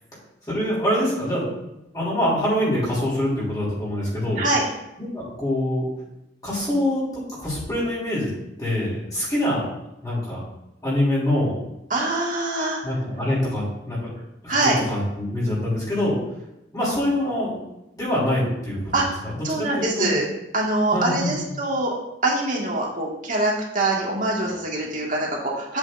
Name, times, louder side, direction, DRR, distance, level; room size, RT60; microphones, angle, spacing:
voice 1, 0.5-4.4 5.0-5.9 6.4-7.0 7.4-8.3 8.6-9.6 10.0-10.4 10.8-11.5 12.8-14.0 14.4-16.2 16.7-17.5 18.0-18.8 19.2-19.3 19.7-20.2 20.9-21.3, left 1 dB, 20° left, -7 dB, 3.2 m, -24 dB
voice 2, 11.9-12.8 14.5-14.8 18.9-20.3 20.5-21.9 22.2-25.8, right 2 dB, 50° right, -2 dB, 1.9 m, -24 dB
8.8 x 8.0 x 2.6 m, 0.89 s
head